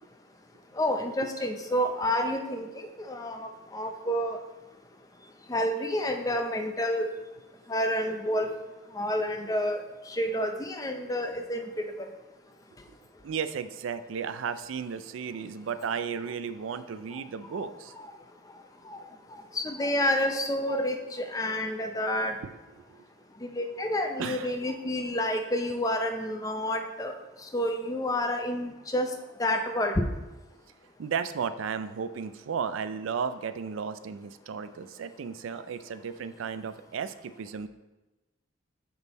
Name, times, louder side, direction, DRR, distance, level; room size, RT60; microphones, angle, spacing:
voice 1, 0.7-2.7 3.0-4.4 5.5-7.1 7.7-8.5 8.9-12.1 17.5-17.7 18.0-18.1 18.9-19.0 19.3-22.4 23.4-27.1 27.4-29.1 29.4-30.1, left 1 dB, 20° left, 5 dB, 0.5 m, -29 dB
voice 2, 13.2-17.9 22.9-23.0 24.2-24.5 31.0-37.7, right 6 dB, 85° right, 12 dB, 0.4 m, -34 dB
6.1 x 5.3 x 4.0 m, 1.1 s
head